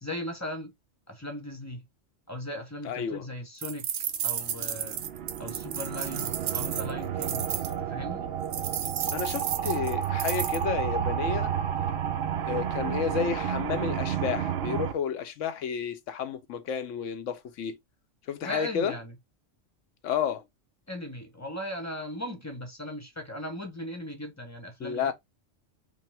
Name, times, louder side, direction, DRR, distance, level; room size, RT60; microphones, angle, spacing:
voice 1, 0.0-0.7 1.1-1.8 2.3-3.8 4.2-5.0 5.4-7.5 7.8-8.3 18.4-19.1 20.9-25.1, left 1 dB, 15° left, 0.8 m, -38 dB
voice 2, 2.8-3.3 9.1-11.6 12.5-17.8 18.3-18.9 20.0-20.4 24.8-25.1, left 7 dB, 75° left, 1.0 m, -31 dB
sound 1, 3.6-7.7 8.5-10.6, right 9 dB, 85° right, 1.0 m, -33 dB
sound 2, 4.3-14.9, right 9 dB, 60° right, 0.7 m, -31 dB
5.2 x 2.2 x 3.3 m
omnidirectional pair, 1.3 m